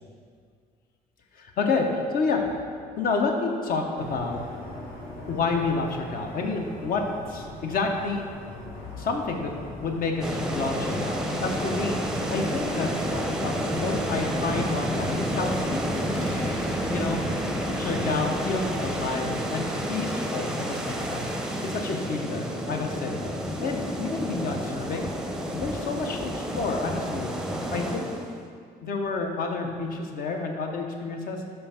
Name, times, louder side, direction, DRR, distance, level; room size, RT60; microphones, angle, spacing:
voice 1, 1.3-2.4 3.0-4.4 5.3-8.3 8.9-9.5 9.8-12.9 13.4-15.9 16.9-17.2 17.8-23.2 23.6-25.1 25.5-27.3 27.7-28.1 28.8-31.4, left 4 dB, 55° left, 3 dB, 0.9 m, -29 dB
sound 1, 4.0-19.1, left 2 dB, 75° left, 1.7 m, -42 dB
sound 2, 10.2-28.4, equal, 5° right, 0.6 m, -30 dB
sound 3, 16.1-17.1 18.7-19.0 20.7-21.1, left 1 dB, 35° left, 1.6 m, -44 dB
5.5 x 4.4 x 5.6 m, 2.1 s
cardioid pair, 110°, 17 cm